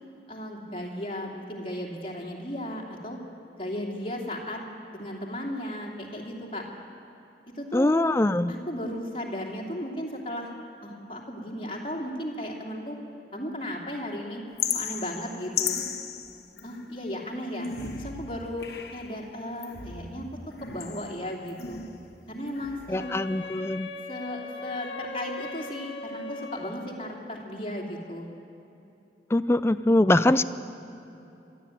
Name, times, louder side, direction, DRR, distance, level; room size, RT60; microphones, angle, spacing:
voice 1, 0.3-3.2 3.5-4.6 4.9-6.6 7.5-7.9 8.5-10.5 10.8-13.0 13.3-14.4 14.7-15.8 16.6-17.7 18.0-20.3 20.6-21.8 22.3-23.1 24.1-28.3, left 1 dB, 30° left, -1 dB, 2.9 m, -35 dB
voice 2, 7.7-8.5 22.9-23.9 29.3-30.4, left 1 dB, 15° left, 12 dB, 0.4 m, -22 dB
sound 1, 14.6-17.0 17.5-19.2 19.6-22.1 22.5-23.1, left 7 dB, 60° left, 1.4 m, -35 dB
Wind instrument woodwind instrument, 23.0-27.1, left 3 dB, 80° left, 1.7 m, -39 dB
22.5 x 13.0 x 9.2 m, 2.8 s
head